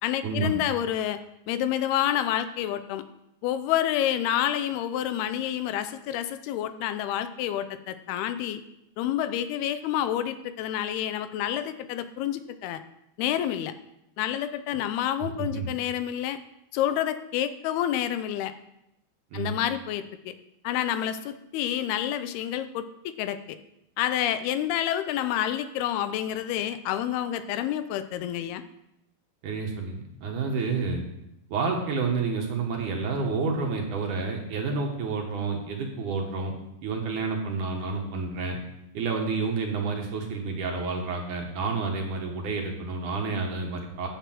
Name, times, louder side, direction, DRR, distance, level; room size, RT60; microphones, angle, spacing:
voice 1, 0.0-1.2 1.5-3.0 3.4-8.6 9.0-12.8 13.2-13.7 14.2-16.4 16.7-18.5 19.3-20.3 20.6-23.6 24.0-28.6, left 11 dB, 85° left, 11 dB, 2.6 m, -28 dB
voice 2, 15.3-15.7 19.3-19.6 29.4-31.0 31.5-36.5 36.8-38.6 38.9-44.1, right 4 dB, 60° right, 1 dB, 2.6 m, -29 dB
10.5 x 6.8 x 7.5 m, 0.84 s
omnidirectional pair, 4.6 m